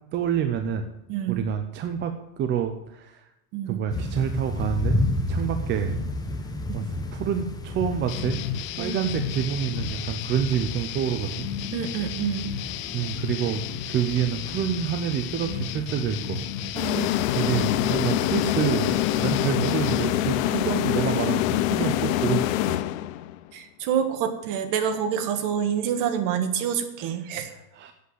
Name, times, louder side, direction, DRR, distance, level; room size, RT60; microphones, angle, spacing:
voice 1, 0.1-0.9 1.3-3.3 3.7-5.0 5.3-6.0 6.7-8.4 8.8-11.5 12.9-13.6 13.9-16.4 16.7-16.9 17.3-22.8 27.2-27.9, right 8 dB, 25° right, 7 dB, 0.6 m, -28 dB
voice 2, 1.1-1.4 3.5-3.8 6.7-6.8 8.8-9.0 11.7-12.5 16.7-17.1 23.5-27.5, right 8 dB, 45° right, 7 dB, 1.7 m, -27 dB
sound 1, 3.9-21.0, left 2 dB, 10° left, 0.9 m, -34 dB
sound 2, 8.1-20.1, left 10 dB, 30° left, 0.4 m, -34 dB
sound 3, 16.8-23.4, left 14 dB, 60° left, 0.7 m, -25 dB
8.2 x 8.1 x 7.8 m, 0.90 s
supercardioid pair, 145°, 44 cm